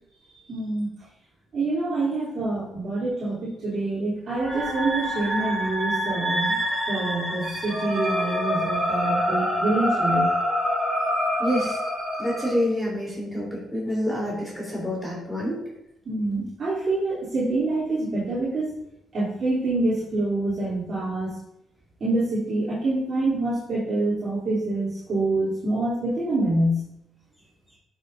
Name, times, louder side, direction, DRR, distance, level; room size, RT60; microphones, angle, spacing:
voice 1, 0.5-0.9 1.5-6.5 6.9-10.3 16.0-18.6 19.1-21.3 22.0-26.8, right 2 dB, 50° right, -10 dB, 3.2 m, -26 dB
sound 1, 4.4-12.5, equal, 15° right, 3.1 m, -26 dB
voice 2, 11.4-11.8 12.2-15.6, equal, 10° left, -5 dB, 3.5 m, -27 dB
11.5 x 6.5 x 2.7 m, 0.81 s
cardioid pair, 90°, 0 cm